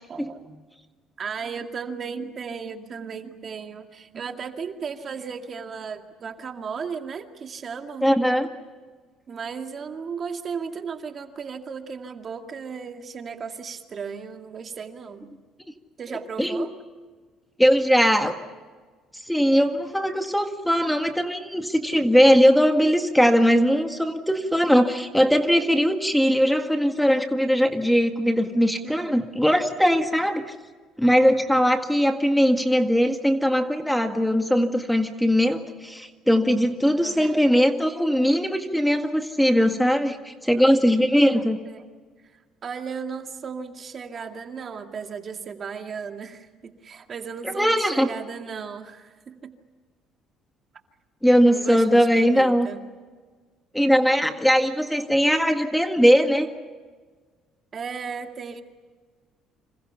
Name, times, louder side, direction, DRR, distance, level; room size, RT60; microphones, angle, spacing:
voice 1, 0.1-0.6 1.2-8.1 9.3-15.3 16.0-16.7 28.8-29.2 36.9-37.4 41.6-41.9 42.3-49.5 51.5-52.8 57.7-58.6, right 6 dB, 40° right, 5 dB, 2.3 m, -35 dB
voice 2, 8.0-8.5 16.4-16.7 17.6-18.4 19.3-30.4 31.0-41.6 47.6-48.1 51.2-52.7 53.7-56.5, equal, ahead, 6 dB, 1.8 m, -20 dB
29.0 x 27.0 x 5.7 m, 1.4 s
cardioid pair, 100°, 0 cm